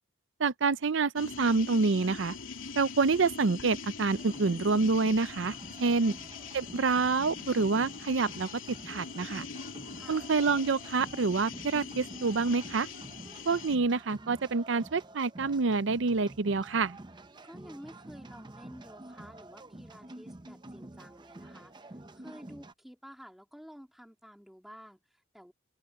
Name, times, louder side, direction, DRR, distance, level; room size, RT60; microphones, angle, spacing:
voice 1, 0.4-2.3 2.8-6.1 6.5-8.5 8.9-9.4 10.1-12.9 13.5-17.0, right 4 dB, 70° right, 0.6 m, -27 dB
sound 1, 1.2-13.8, left 5 dB, 90° left, 2.7 m, -43 dB
sound 2, 4.2-22.7, right 2 dB, 20° right, 0.6 m, -49 dB
voice 2, 17.4-25.5, equal, ahead, 2.7 m, -51 dB
open air
head